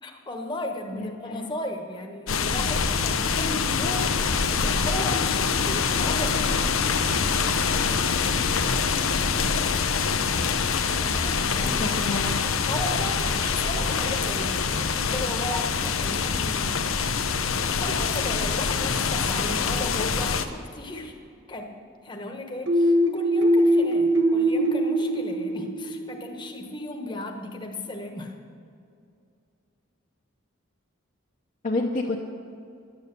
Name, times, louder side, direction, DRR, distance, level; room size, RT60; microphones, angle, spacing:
voice 1, 0.0-4.2 4.5-6.8 11.0-11.9 12.7-17.0 17.7-21.2 21.5-28.4, left 1 dB, 20° left, 3 dB, 1.1 m, -35 dB
voice 2, 1.0-1.5 11.6-12.4 31.6-32.2, left 2 dB, 40° left, -1 dB, 0.8 m, -29 dB
sound 1, 2.3-20.5, left 5 dB, 90° left, 0.8 m, -25 dB
sound 2, 22.7-26.3, right 1 dB, 65° right, 1.3 m, -22 dB
11.0 x 8.8 x 8.2 m, 2.4 s
head